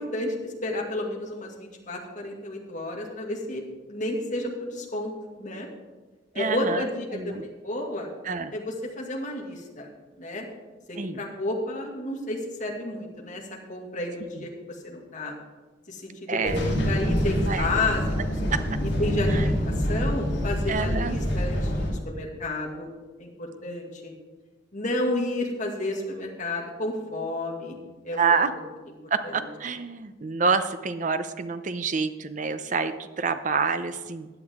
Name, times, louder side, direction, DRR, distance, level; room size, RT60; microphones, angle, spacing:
voice 1, 0.0-3.6 3.9-5.1 5.4-5.7 6.3-8.1 8.5-9.9 10.2-10.5 10.9-13.4 13.7-14.5 14.8-15.3 15.9-18.0 19.0-22.9 23.2-24.1 24.7-27.8 28.0-28.4 29.2-29.3, left 1 dB, 40° left, 0 dB, 2.1 m, -31 dB
voice 2, 6.4-7.5 8.2-8.5 10.9-11.2 14.3-14.5 16.3-16.7 17.2-17.7 18.5-18.6 19.3-19.5 20.7-21.2 28.1-28.5 29.1-34.3, right 5 dB, 40° right, 11 dB, 0.7 m, -27 dB
sound 1, 16.5-21.9, equal, 70° left, 3.8 m, -26 dB
16.0 x 10.0 x 3.6 m, 1.3 s
head